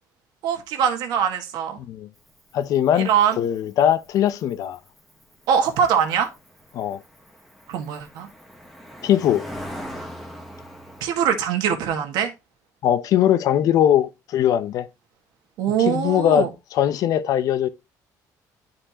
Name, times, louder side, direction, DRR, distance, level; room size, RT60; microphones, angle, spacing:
voice 1, 0.4-1.8 2.9-3.4 5.5-6.3 7.7-8.3 11.0-12.3 15.6-16.5, right 8 dB, 80° right, 1.7 m, -22 dB
voice 2, 1.8-2.1 2.5-3.1 3.4-4.8 6.7-7.0 9.0-9.5 12.8-14.9 15.8-17.7, left 10 dB, 60° left, 0.7 m, -20 dB
Cricket, 2.2-11.0, equal, ahead, 1.3 m, -41 dB
11.5 x 4.4 x 2.9 m
cardioid pair, 155°, 7 cm